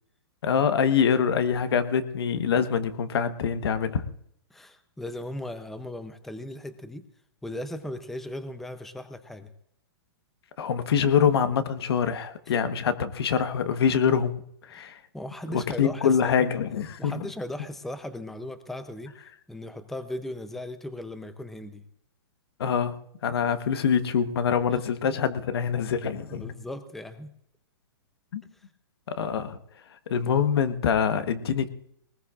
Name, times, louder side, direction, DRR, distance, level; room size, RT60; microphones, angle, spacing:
voice 1, 0.4-4.1 10.6-15.0 15.5-17.2 22.6-22.9 23.2-26.5 28.3-28.4 29.1-29.6 30.1-31.7, left 7 dB, 70° left, 11 dB, 1.2 m, -25 dB
voice 2, 4.5-7.0 7.4-9.5 14.7-14.8 15.1-16.4 17.0-19.2 19.5-21.8 26.3-27.4 28.5-28.7, left 1 dB, ahead, 10 dB, 0.6 m, -37 dB
20.5 x 19.5 x 2.5 m, 0.72 s
hypercardioid pair, 150°, 14 cm